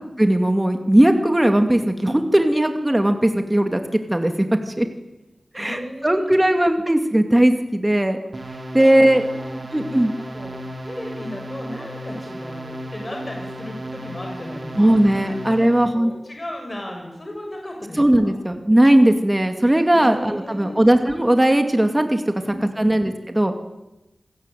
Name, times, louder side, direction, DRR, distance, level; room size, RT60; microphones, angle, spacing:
voice 1, 0.2-4.3 4.7-4.9 5.5-8.2 8.7-9.3 9.7-10.1 14.8-16.1 18.0-22.3 22.8-23.5, right 1 dB, 15° right, 6 dB, 2.3 m, -18 dB
voice 2, 5.6-6.8 8.7-10.5 10.8-18.3 19.9-20.8 22.3-23.0, left 1 dB, 30° left, 2 dB, 6.9 m, -36 dB
sound 1, 8.3-15.9, right 1 dB, 30° right, 4.1 m, -34 dB
28.0 x 21.0 x 9.2 m, 0.98 s
wide cardioid pair, 95°, 0 cm